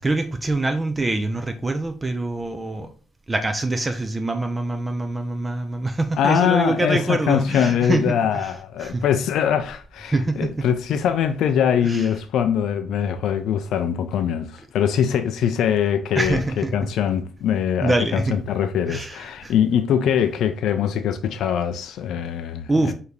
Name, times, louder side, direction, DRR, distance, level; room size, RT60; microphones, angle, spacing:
voice 1, 0.0-2.9 3.3-8.5 8.8-9.0 10.1-10.6 11.8-12.1 16.2-16.7 17.8-18.4 18.9-19.5 22.7-22.9, right 2 dB, 20° right, 0.4 m, -24 dB
voice 2, 6.2-22.9, left 8 dB, 80° left, 0.3 m, -22 dB
4.8 x 2.7 x 3.2 m
cardioid pair, 90°, 0 cm